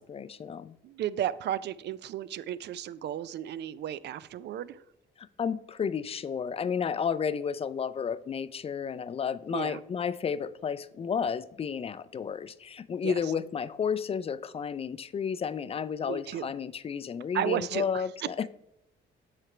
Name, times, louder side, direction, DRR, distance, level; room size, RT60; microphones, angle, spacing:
voice 1, 0.0-0.8 5.2-18.5, left 7 dB, 30° left, 15 dB, 0.3 m, -32 dB
voice 2, 0.8-4.8 9.5-9.8 13.0-13.3 16.1-16.5 17.3-18.0, right 11 dB, 60° right, 17 dB, 0.4 m, -34 dB
7.4 x 3.3 x 4.9 m, 0.80 s
cardioid pair, 90°, 20 cm